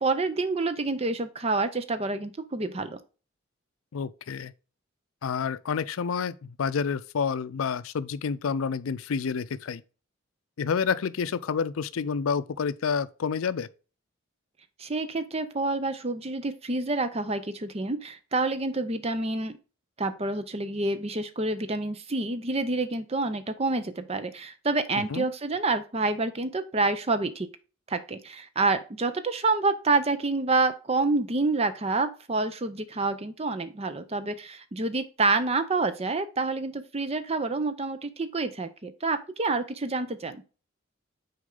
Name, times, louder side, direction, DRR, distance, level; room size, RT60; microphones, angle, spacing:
voice 1, 0.0-3.0 14.8-19.5 20.0-27.5 27.9-40.4, right 3 dB, 30° right, 0.6 m, -28 dB
voice 2, 3.9-4.5 5.2-9.8 10.6-13.7 25.0-25.2, left 6 dB, 80° left, 0.4 m, -29 dB
6.3 x 4.4 x 3.8 m
head